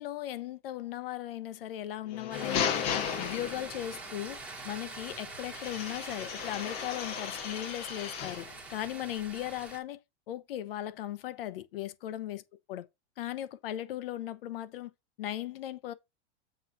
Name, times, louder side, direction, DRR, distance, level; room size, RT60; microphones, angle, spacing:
voice 1, 0.0-2.8 3.2-4.4 4.6-10.0 10.3-12.4 12.7-12.9 13.2-14.9 15.2-15.9, left 12 dB, 55° left, 1.0 m, -37 dB
sound 1, 2.0-4.0 5.5-8.5, left 8 dB, 20° left, 0.7 m, -35 dB
sound 2, 2.3-9.8, right 3 dB, 5° right, 1.3 m, -45 dB
7.9 x 4.0 x 5.8 m
supercardioid pair, 180°, 34 cm